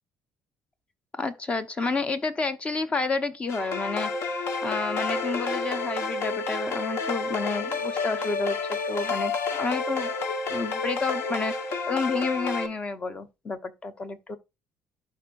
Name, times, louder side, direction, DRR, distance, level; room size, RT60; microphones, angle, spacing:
voice 1, 1.2-4.1 4.6-10.1 10.5-14.4, left 3 dB, 20° left, 0.9 m, -30 dB
sound 1, 3.5-12.7, left 4 dB, 55° left, 1.2 m, -30 dB
11.5 x 4.6 x 2.5 m
cardioid pair, 135°, 5 cm